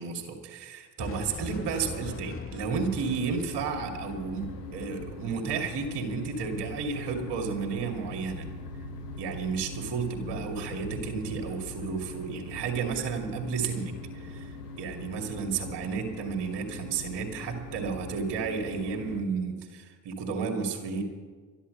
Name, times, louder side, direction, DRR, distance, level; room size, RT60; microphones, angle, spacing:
voice 1, 0.0-8.5 9.2-14.5 14.8-21.0, right 5 dB, 60° right, 3 dB, 2.4 m, -32 dB
sound 1, 1.0-8.3 8.6-9.0 13.0-15.1, left 4 dB, 30° left, 1.3 m, -44 dB
sound 2, 2.7-19.2, left 2 dB, 90° left, 1.0 m, -41 dB
12.5 x 11.0 x 7.7 m, 1.5 s
hypercardioid pair, 50°, 45 cm